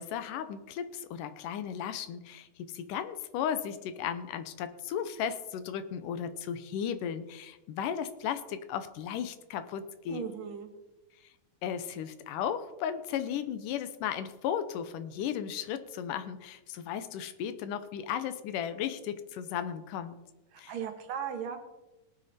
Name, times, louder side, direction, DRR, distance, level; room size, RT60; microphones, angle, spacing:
voice 1, 0.0-10.3 11.6-20.2 20.6-20.7, left 8 dB, 80° left, 12 dB, 2.4 m, -35 dB
voice 2, 10.1-10.7 20.5-21.6, right 8 dB, 90° right, 5 dB, 3.2 m, -37 dB
18.5 x 9.2 x 4.2 m, 1.0 s
omnidirectional pair, 3.8 m